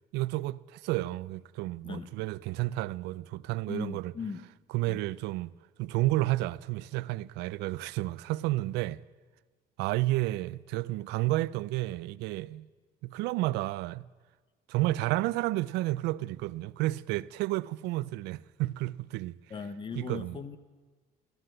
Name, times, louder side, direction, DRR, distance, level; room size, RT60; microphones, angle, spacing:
voice 1, 0.1-4.1 4.7-5.5 5.8-9.0 9.8-12.7 13.0-14.1 14.7-19.4 20.0-20.4, right 18 dB, 90° right, 0.4 m, -31 dB
voice 2, 3.7-4.4 4.9-5.0 19.5-20.6, left 5 dB, 30° left, 0.9 m, -38 dB
13.5 x 13.5 x 7.7 m
cardioid pair, 110°, 17 cm